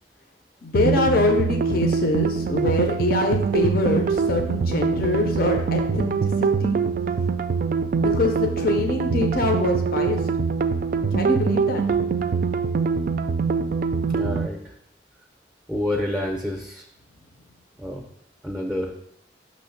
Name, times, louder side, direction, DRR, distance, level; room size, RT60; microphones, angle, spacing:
voice 1, 0.6-6.8 8.0-10.2 11.1-11.8, left 2 dB, 55° left, 3 dB, 0.6 m, -24 dB
sound 1, 0.7-14.5, right 5 dB, 50° right, 0.3 m, -23 dB
voice 2, 14.1-14.6 15.7-16.8 17.8-18.0 18.4-19.0, left 1 dB, ahead, 0 dB, 0.5 m, -28 dB
6.3 x 3.1 x 5.7 m, 0.73 s
head